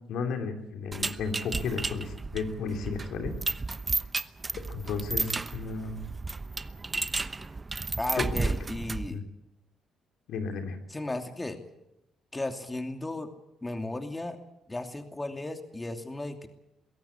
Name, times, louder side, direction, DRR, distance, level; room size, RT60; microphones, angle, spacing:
voice 1, 0.1-3.3 4.7-6.0 8.2-8.3 9.1-9.2 10.3-10.8, left 5 dB, 75° left, 4 dB, 3.3 m, -33 dB
sound 1, 0.9-9.2, right 3 dB, 30° right, 1.0 m, -33 dB
voice 2, 8.0-9.2 10.9-11.6 12.3-13.3 13.6-14.4 14.7-16.5, left 2 dB, 20° left, 5 dB, 2.7 m, -35 dB
22.5 x 16.5 x 8.5 m, 0.90 s
supercardioid pair, 60°, 0 cm